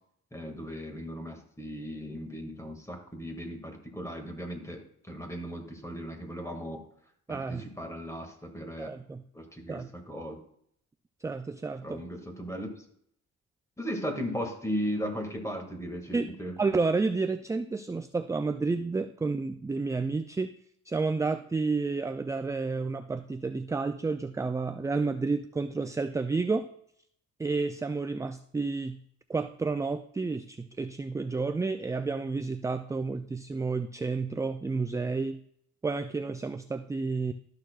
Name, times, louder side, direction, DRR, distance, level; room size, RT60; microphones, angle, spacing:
voice 1, 0.3-6.8 7.3-8.9 9.3-10.4 11.8-12.7 13.8-16.5, equal, 10° left, 3 dB, 2.1 m, -37 dB
voice 2, 7.3-7.7 8.8-9.3 9.7-9.9 11.2-12.0 16.1-16.3 16.6-20.5 20.9-26.7 27.4-29.0 29.3-35.4 35.8-37.3, right 4 dB, 10° right, 9 dB, 0.3 m, -30 dB
13.0 x 6.5 x 2.4 m, 0.67 s
cardioid pair, 90°, 30 cm